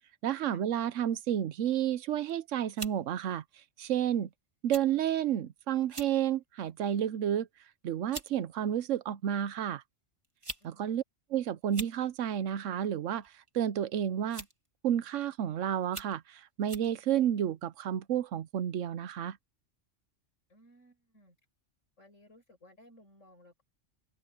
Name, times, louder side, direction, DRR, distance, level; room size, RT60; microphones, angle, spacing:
voice 1, 0.2-3.4 3.8-4.3 4.6-7.5 7.8-9.8 10.6-11.0 11.3-14.5 14.8-19.4, right 10 dB, 80° right, 1.1 m, -31 dB
sound 1, 2.1-2.3 2.8-3.0 3.8-4.0 4.7-4.9 5.2-5.3 5.8-6.2 6.7-6.9 7.7-7.8 8.1-8.3 9.4-9.5 10.2-10.7 10.9-11.0 11.6-12.0 13.2-13.5 14.3-14.7 15.2-15.3 15.8-16.2 16.7-16.9, right 2 dB, 25° right, 2.1 m, -43 dB
voice 2, 10.6-11.0 20.5-21.4 22.0-23.6, left 1 dB, 90° left, 7.6 m, -59 dB
open air
omnidirectional pair, 1.3 m